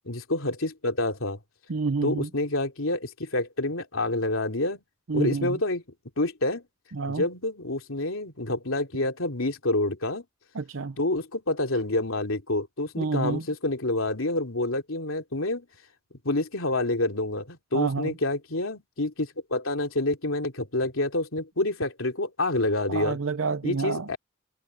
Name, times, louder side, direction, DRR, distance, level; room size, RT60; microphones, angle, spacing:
voice 1, 0.1-1.4 2.0-4.8 5.1-5.8 6.2-6.6 7.1-10.2 11.0-15.7 16.2-23.2 23.6-24.2, left 2 dB, 90° left, 3.1 m, -28 dB
voice 2, 1.7-2.3 5.1-5.6 6.9-7.2 10.5-11.0 13.0-13.4 17.7-18.1 22.9-24.1, right 4 dB, 85° right, 0.7 m, -28 dB
head